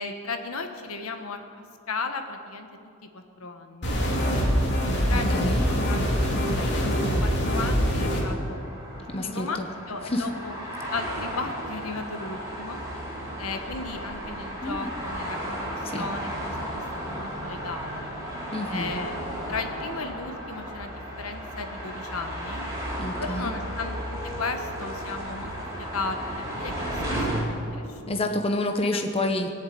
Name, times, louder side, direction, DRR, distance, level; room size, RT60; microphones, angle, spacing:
voice 1, 0.0-1.4 1.9-2.7 3.1-5.4 5.9-8.6 9.2-9.6 9.9-10.6 10.9-12.8 13.4-16.7 17.1-18.1 18.7-22.6 23.2-25.5 25.8-27.4 27.7-28.2 28.9-29.0, left 3 dB, 85° left, 6 dB, 1.4 m, -35 dB
sound 1, 3.8-8.2, equal, 50° left, 2.6 m, -24 dB
voice 2, 5.1-5.6 9.1-9.7 10.1-10.2 14.6-14.9 15.8-16.1 18.5-18.9 23.0-23.5 28.1-29.5, left 1 dB, 25° left, 4 dB, 0.9 m, -28 dB
sound 2, 8.1-27.4, equal, 15° right, 4.1 m, -34 dB
21.0 x 7.4 x 8.8 m, 2.5 s
head